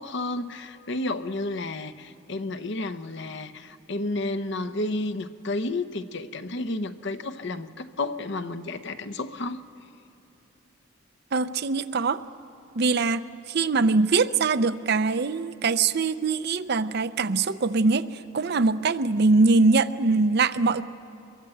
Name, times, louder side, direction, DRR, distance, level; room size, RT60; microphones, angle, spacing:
voice 1, 0.0-9.6, left 2 dB, 60° left, 11 dB, 0.8 m, -31 dB
voice 2, 11.3-12.2 12.8-13.2 13.5-20.8, right 3 dB, 50° right, 13 dB, 0.6 m, -22 dB
24.0 x 22.5 x 7.8 m, 2.6 s
head